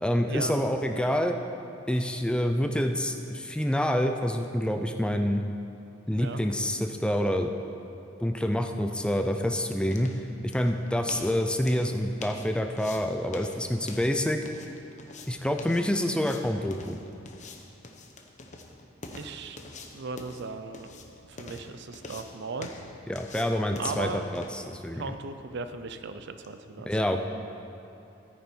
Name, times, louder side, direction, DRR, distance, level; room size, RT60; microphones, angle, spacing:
voice 1, 0.0-1.4 1.9-5.4 6.1-7.5 8.2-10.1 10.5-14.4 15.3-17.0 23.1-25.1 26.9-27.2, equal, 5° left, 5 dB, 0.5 m, -27 dB
voice 2, 6.1-6.4 19.1-19.6 19.9-20.9 21.3-22.7 23.8-24.3 24.9-26.9, right 4 dB, 60° right, 9 dB, 0.6 m, -37 dB
sound 1, 9.4-26.6, left 2 dB, 40° left, 0.9 m, -46 dB
13.5 x 9.5 x 4.5 m, 2.7 s
head